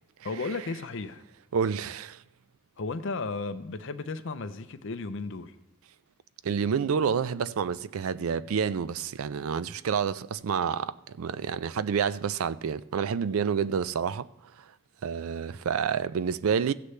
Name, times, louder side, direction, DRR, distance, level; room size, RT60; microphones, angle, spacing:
voice 1, 0.2-1.2 2.8-5.5, left 3 dB, 60° left, 0.6 m, -34 dB
voice 2, 1.5-2.2 6.4-14.3 15.0-16.7, right 6 dB, 80° right, 0.4 m, -28 dB
15.5 x 8.1 x 3.3 m
head